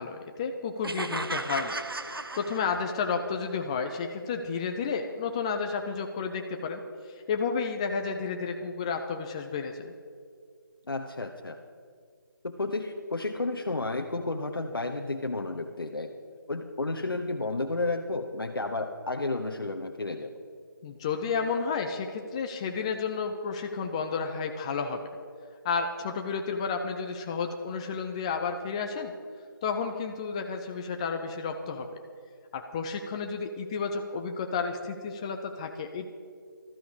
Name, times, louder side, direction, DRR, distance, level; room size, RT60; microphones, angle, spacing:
voice 1, 0.0-1.7 2.4-6.8 7.3-9.9 20.8-25.0 25.6-29.1 29.6-31.9 32.5-36.1, left 5 dB, 15° left, 5 dB, 0.4 m, -31 dB
sound 1, 0.8-3.2, right 2 dB, 85° right, 0.8 m, -35 dB
voice 2, 10.9-11.6 12.4-16.1 16.5-20.3, left 2 dB, 75° left, 4 dB, 1.0 m, -32 dB
14.0 x 12.5 x 4.9 m, 2.1 s
figure-of-eight pair, 155°, 12 cm